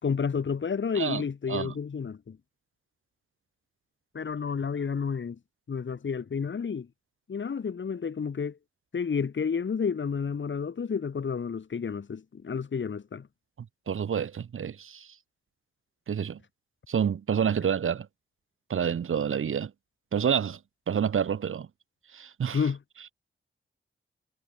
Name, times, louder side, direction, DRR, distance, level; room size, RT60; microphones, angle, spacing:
voice 1, 0.0-2.4 4.1-5.4 5.7-6.9 7.3-8.6 8.9-13.3 22.5-22.8, left 6 dB, 65° left, 5.0 m, -30 dB
voice 2, 13.9-15.1 16.1-16.4 16.9-18.1 18.7-19.7 20.1-20.6 20.9-21.7 22.1-22.6, right 8 dB, 80° right, 2.5 m, -28 dB
cardioid pair, 70°, 21 cm